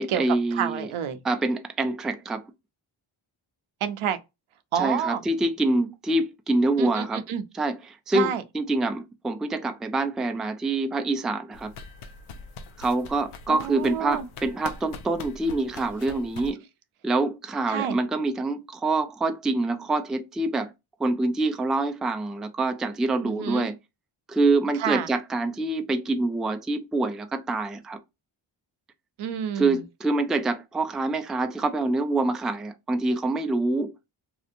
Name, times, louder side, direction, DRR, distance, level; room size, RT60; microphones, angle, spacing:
voice 1, 0.0-0.9 1.2-2.4 4.8-7.2 7.5-11.7 12.8-16.6 17.0-20.7 21.0-23.8 24.3-28.0 29.6-33.9, right 2 dB, ahead, 0.3 m, -26 dB
voice 2, 0.5-1.2 3.8-4.2 4.7-5.2 6.8-7.4 8.1-8.4 13.5-14.3 16.4-16.5 17.7-18.0 23.2-23.7 24.8-25.1 29.2-29.8, right 8 dB, 80° right, 0.7 m, -28 dB
sound 1, 11.5-16.5, left 4 dB, 80° left, 0.6 m, -43 dB
2.7 x 2.1 x 2.5 m
cardioid pair, 50°, 49 cm